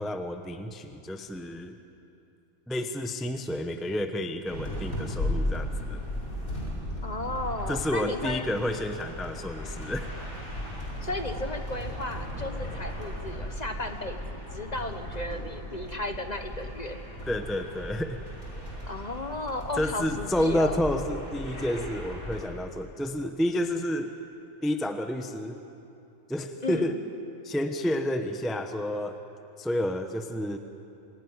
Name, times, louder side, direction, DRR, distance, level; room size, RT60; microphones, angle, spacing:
voice 1, 0.0-1.8 2.7-6.0 7.7-10.1 17.3-18.2 19.8-24.1 24.6-25.6 26.3-27.0 27.4-29.2 29.6-30.6, left 1 dB, ahead, 6 dB, 0.8 m, -30 dB
sound 1, 4.4-22.4, left 1 dB, 75° left, 5.9 m, -36 dB
voice 2, 7.0-8.4 11.0-17.0 18.9-20.8 26.6-27.0, left 2 dB, 30° left, 6 dB, 1.2 m, -34 dB
26.5 x 16.5 x 9.6 m, 2.8 s
omnidirectional pair, 1.5 m